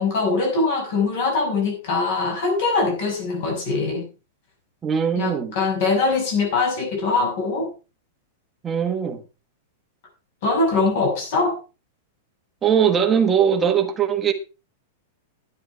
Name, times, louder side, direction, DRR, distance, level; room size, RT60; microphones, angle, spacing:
voice 1, 0.0-4.1 5.1-7.7 10.4-11.6, left 3 dB, 45° left, 6.3 m, -22 dB
voice 2, 4.8-5.5 8.6-9.2 12.6-14.3, right 8 dB, 10° right, 1.3 m, -20 dB
11.0 x 10.5 x 4.5 m
supercardioid pair, 175°, 0 cm